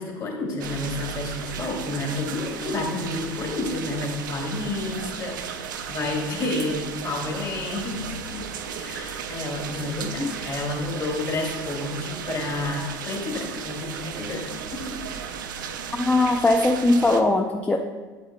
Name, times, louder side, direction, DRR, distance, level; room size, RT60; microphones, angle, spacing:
voice 1, 0.0-8.4 8.7-14.4 14.7-15.0, left 2 dB, 40° left, 0 dB, 2.1 m, -30 dB
sound 1, 0.6-17.2, right 7 dB, 80° right, 0.5 m, -35 dB
voice 2, 15.9-17.8, left 2 dB, 15° left, 2 dB, 0.5 m, -20 dB
8.5 x 7.7 x 2.2 m, 1.4 s
hypercardioid pair, 70°, 10 cm